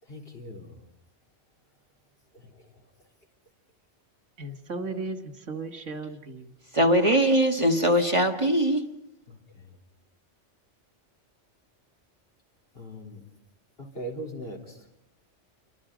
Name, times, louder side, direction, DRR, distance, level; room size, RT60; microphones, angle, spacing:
voice 1, 0.1-0.8 9.3-9.7 12.7-13.3 13.8-14.8, right 1 dB, 55° left, 4.1 m, -40 dB
voice 2, 4.4-6.5, right 3 dB, 85° right, 2.2 m, -35 dB
voice 3, 6.7-8.8, equal, 25° right, 1.5 m, -21 dB
29.0 x 24.0 x 5.2 m
omnidirectional pair, 1.2 m